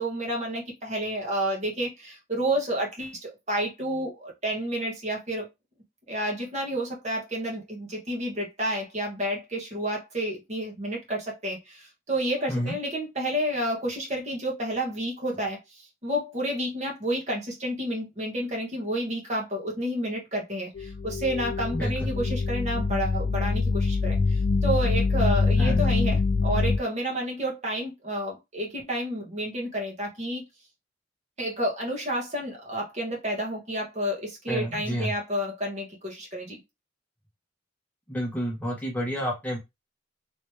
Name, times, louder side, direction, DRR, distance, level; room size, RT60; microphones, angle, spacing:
voice 1, 0.0-5.5 6.1-30.4 31.4-36.6, right 1 dB, 35° right, 1.3 m, -30 dB
sound 1, 20.8-26.8, left 4 dB, 55° left, 0.3 m, -24 dB
voice 2, 21.7-22.1 25.6-25.9 34.5-35.1 38.1-39.6, equal, 10° left, 1.0 m, -29 dB
3.2 x 3.0 x 3.2 m
head